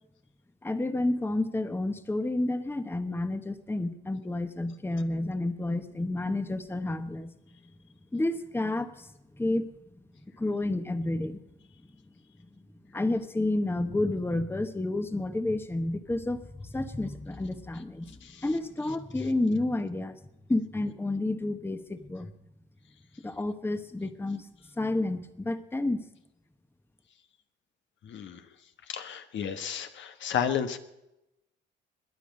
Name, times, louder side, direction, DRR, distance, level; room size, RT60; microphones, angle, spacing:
voice 1, 0.6-7.3 8.1-9.7 10.4-11.4 12.9-20.2 20.5-22.3 23.2-24.5 24.8-26.0, left 2 dB, 10° left, 10 dB, 1.1 m, -30 dB
voice 2, 28.0-28.5 28.9-30.8, left 8 dB, 70° left, 8 dB, 1.3 m, -32 dB
21.5 x 9.8 x 5.4 m, 0.89 s
cardioid pair, 90°, 20 cm